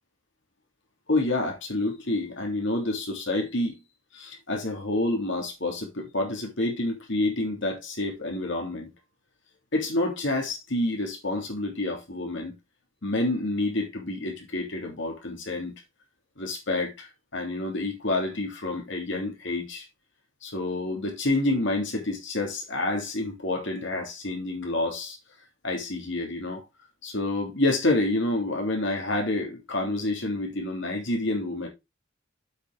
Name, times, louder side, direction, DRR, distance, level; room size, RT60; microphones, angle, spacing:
voice 1, 1.1-3.8 4.1-8.9 9.7-12.5 13.0-15.7 16.4-19.9 20.4-25.2 25.6-26.6 27.0-31.7, left 2 dB, 65° left, 3.1 m, -28 dB
8.1 x 6.7 x 3.6 m
head